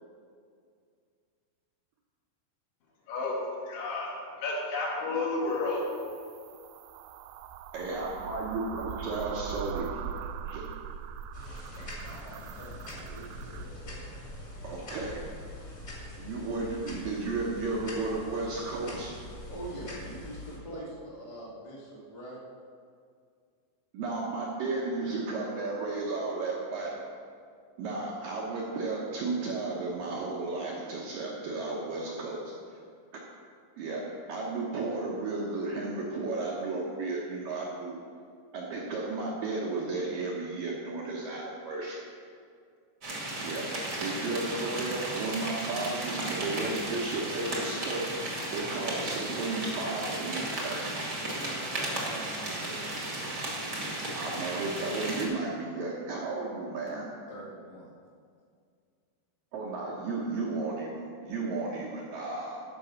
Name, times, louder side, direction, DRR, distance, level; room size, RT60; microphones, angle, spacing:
voice 1, 3.1-3.4 3.7-4.1 4.4-5.8, left 3 dB, 85° left, -4 dB, 4.4 m, -31 dB
sound 1, 5.6-13.7, right 8 dB, 90° right, 2.3 m, -41 dB
voice 2, 7.7-10.0 10.5-10.6 14.6-15.2 16.2-19.2 23.9-26.9 27.8-32.4 32.7-32.8 33.8-34.0 34.3-38.0 38.5-42.0 43.4-43.7 44.0-51.1 54.1-57.1 59.5-62.6, right 3 dB, 70° right, -3 dB, 2.2 m, -33 dB
sound 2, 11.3-20.6, left 1 dB, 35° left, 1.3 m, -43 dB
voice 3, 11.7-14.1 19.4-22.4 51.2-52.9 57.1-57.9, right 1 dB, 65° left, -6 dB, 0.4 m, -44 dB
sound 3, 43.0-55.2, right 1 dB, 45° right, 1.3 m, -34 dB
13.5 x 5.2 x 6.4 m, 2.2 s
omnidirectional pair, 5.3 m